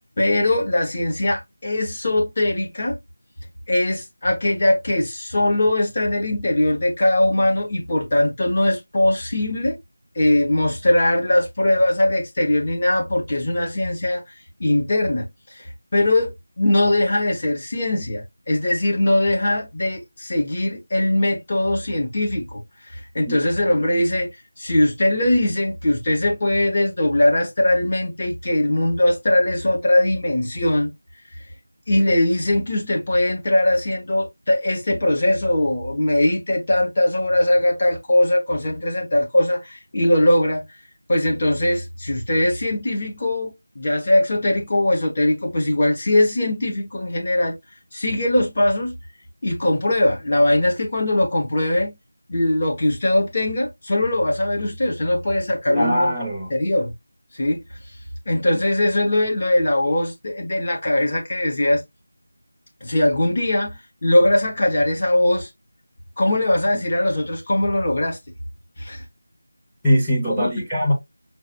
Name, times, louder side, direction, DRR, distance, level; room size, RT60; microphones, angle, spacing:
voice 1, 0.2-3.0 3.7-9.8 10.1-14.2 14.6-30.9 31.9-40.6 41.1-47.5 47.9-48.9 49.4-52.0 52.3-56.1 56.5-56.9 57.3-57.6 58.3-61.8 62.8-65.5 66.2-68.2 68.8-69.0 70.4-70.5, left 1 dB, 30° left, 1.2 m, -20 dB
voice 2, 55.7-56.5 69.8-70.9, equal, ahead, 0.8 m, -21 dB
5.9 x 2.5 x 2.9 m
figure-of-eight pair, 175°, 0 cm